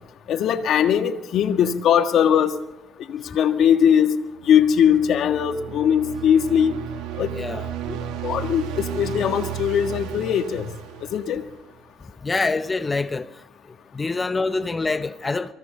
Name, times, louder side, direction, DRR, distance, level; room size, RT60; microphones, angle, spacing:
voice 1, 0.3-2.6 3.1-4.2 4.5-6.7 7.2-7.3 7.9-8.0 8.2-10.7 11.1-11.4, left 8 dB, 65° left, 1.7 m, -20 dB
sound 1, 4.4-11.8, right 10 dB, 80° right, 1.8 m, -34 dB
voice 2, 7.3-7.7 12.2-13.3 13.9-15.5, left 3 dB, 25° left, 0.9 m, -25 dB
24.0 x 16.5 x 6.8 m
supercardioid pair, 70°, 0 cm